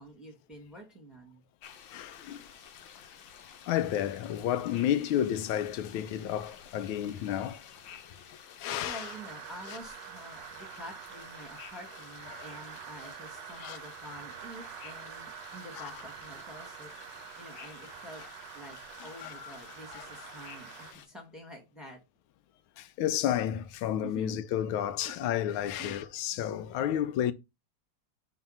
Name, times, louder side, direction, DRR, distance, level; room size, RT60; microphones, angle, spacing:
voice 1, 0.0-1.4 8.8-18.2 18.5-18.8 19.0-22.0 24.0-24.4 25.0-25.3 25.8-26.0, right 1 dB, ahead, 1.4 m, -48 dB
sound 1, 1.6-21.1, left 8 dB, 70° left, 1.5 m, -52 dB
voice 2, 1.9-2.5 3.7-7.7 8.6-9.1 9.7-9.8 12.3-12.4 13.6-13.8 15.8-15.9 19.0-19.5 19.9-20.1 22.8-27.3, left 11 dB, 85° left, 1.4 m, -31 dB
sound 2, 8.9-20.9, right 12 dB, 75° right, 1.1 m, -47 dB
4.3 x 4.0 x 5.5 m
omnidirectional pair, 2.2 m